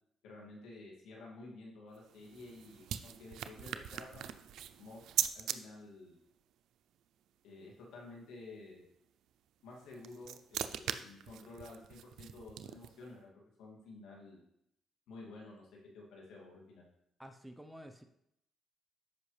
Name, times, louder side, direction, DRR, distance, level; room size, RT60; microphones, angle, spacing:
voice 1, 0.2-4.3 4.8-5.0 5.3-6.2 7.4-8.8 9.6-14.4 15.1-15.6 15.9-16.8, left 2 dB, 85° left, -2 dB, 2.3 m, -51 dB
sound 1, 1.9-5.6 9.7-13.1, right 10 dB, 80° right, 0.5 m, -40 dB
voice 2, 17.2-18.0, equal, 5° right, 6 dB, 0.7 m, -50 dB
13.5 x 5.4 x 3.3 m, 0.76 s
cardioid pair, 90°, 0 cm